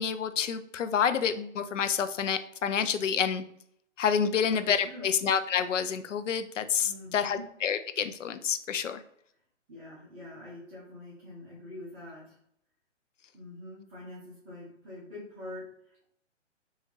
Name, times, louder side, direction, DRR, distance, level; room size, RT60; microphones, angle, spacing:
voice 1, 0.0-3.4 4.0-9.0, left 7 dB, 75° left, 11 dB, 0.5 m, -28 dB
voice 2, 4.3-5.1 6.8-7.4 9.7-12.4 13.3-16.0, left 1 dB, 20° right, -8 dB, 1.1 m, -45 dB
3.6 x 2.8 x 2.9 m, 0.69 s
figure-of-eight pair, 130°, 37 cm